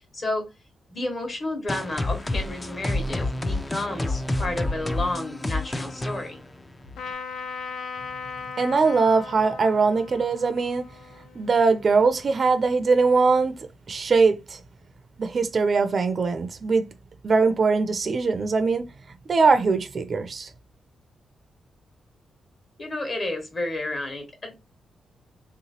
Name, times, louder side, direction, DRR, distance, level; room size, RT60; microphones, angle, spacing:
voice 1, 0.1-0.5 0.9-6.4 22.8-24.5, left 2 dB, 40° left, 1.3 m, -31 dB
sound 1, 1.7-7.1, left 2 dB, 15° left, 0.4 m, -29 dB
Trumpet, 7.0-12.5, left 5 dB, 85° left, 0.5 m, -38 dB
voice 2, 8.6-10.8 11.4-13.5 13.9-14.6 15.2-16.8 17.2-18.8 19.3-20.5, right 4 dB, 40° right, 0.4 m, -21 dB
3.4 x 2.9 x 2.8 m
cardioid pair, 120°, 0 cm